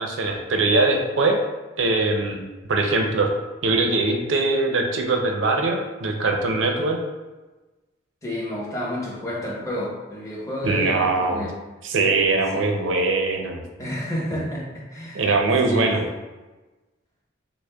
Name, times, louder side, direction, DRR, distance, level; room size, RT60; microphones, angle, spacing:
voice 1, 0.0-1.4 1.8-3.3 3.6-7.0 10.6-11.5 11.8-13.6 14.3-14.4 15.1-16.0, right 3 dB, 75° right, 3 dB, 0.5 m, -22 dB
voice 2, 8.2-11.5 12.5-12.7 13.8-15.3 15.6-15.9, equal, 15° left, -5 dB, 0.9 m, -30 dB
6.1 x 2.0 x 2.3 m, 1.2 s
head